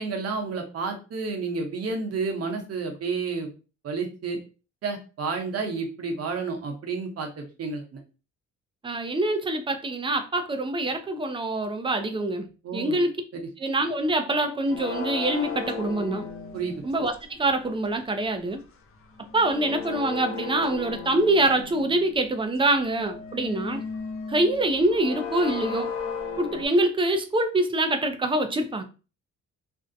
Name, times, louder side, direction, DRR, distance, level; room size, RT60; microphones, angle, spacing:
voice 1, 0.0-3.5 3.8-4.4 4.8-8.0 12.6-13.0 13.3-13.5 16.5-16.8, right 4 dB, 55° right, 0.8 m, -30 dB
voice 2, 8.8-13.1 13.6-16.2 16.8-18.6 19.3-23.8 24.3-25.9 26.4-28.8, right 2 dB, 20° right, 0.3 m, -25 dB
sound 1, 14.7-17.1 19.0-22.2 22.8-26.7, left 5 dB, 45° left, 0.5 m, -35 dB
2.6 x 2.0 x 2.4 m
cardioid pair, 90°, 30 cm